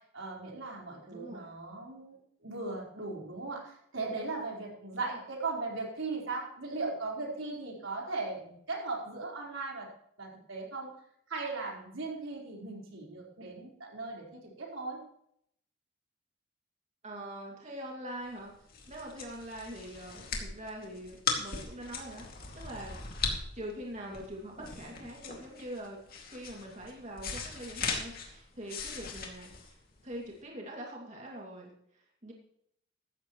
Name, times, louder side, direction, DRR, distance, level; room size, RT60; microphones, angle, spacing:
voice 1, 0.0-9.9 10.2-10.9 11.3-15.0, right 3 dB, 90° right, -2 dB, 4.5 m, -38 dB
voice 2, 1.1-1.5 5.1-5.2 17.0-18.5 18.9-22.3 22.5-23.0 23.5-26.0 26.2-29.8 30.0-32.3, right 1 dB, 35° right, -2 dB, 2.5 m, -43 dB
sound 1, 18.4-30.3, left 5 dB, 50° left, 2.4 m, -39 dB
15.5 x 12.5 x 3.1 m, 0.70 s
head